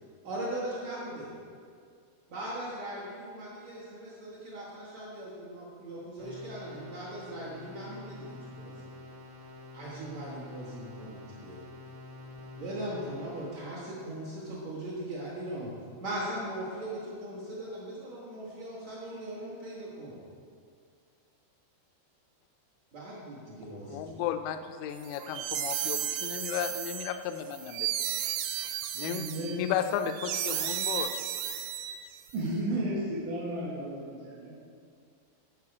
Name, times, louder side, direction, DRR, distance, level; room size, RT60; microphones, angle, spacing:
voice 1, 0.2-1.3 2.3-8.9 9.7-11.6 12.5-15.7 16.0-20.2 22.9-24.3, right 1 dB, 55° right, -8 dB, 2.0 m, -39 dB
sound 1, 6.2-13.7, left 2 dB, 35° right, 1.5 m, -47 dB
voice 2, 23.9-27.9 29.0-31.1, left 9 dB, 85° left, 8 dB, 2.6 m, -34 dB
sound 2, 25.0-32.3, right 10 dB, 90° right, 2.5 m, -34 dB
voice 3, 29.0-29.6 32.3-34.6, right 1 dB, 75° right, -9 dB, 3.9 m, -33 dB
15.0 x 5.7 x 4.8 m, 2.2 s
omnidirectional pair, 5.6 m